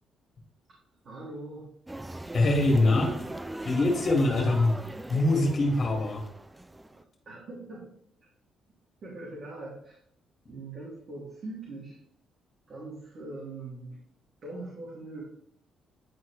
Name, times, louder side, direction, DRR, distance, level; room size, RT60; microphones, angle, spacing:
voice 1, 1.0-1.7 7.2-7.9 9.0-10.0 10.5-12.0 12.7-14.0 14.4-15.2, right 2 dB, 55° right, -7 dB, 3.0 m, -41 dB
sound 1, 1.9-7.0, right 1 dB, 10° right, 0.4 m, -39 dB
voice 2, 2.3-3.2 3.6-4.8 5.1-6.3, left 2 dB, 45° left, -1 dB, 2.3 m, -23 dB
10.5 x 4.4 x 3.5 m, 0.66 s
cardioid pair, 90°, 0 cm